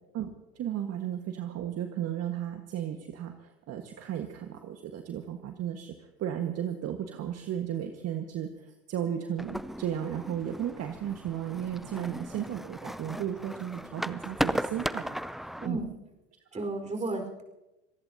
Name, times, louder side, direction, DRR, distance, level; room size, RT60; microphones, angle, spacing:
voice 1, 0.1-15.0 15.6-15.8 16.5-16.6, right 10 dB, 45° right, 5 dB, 1.6 m, -34 dB
sound 1, 9.4-15.7, equal, ahead, 0.4 m, -36 dB
voice 2, 11.9-12.2 15.6-16.0 16.5-17.4, right 2 dB, 20° right, 4 dB, 4.6 m, -34 dB
26.5 x 19.0 x 2.8 m, 0.98 s
hypercardioid pair, 75°, 36 cm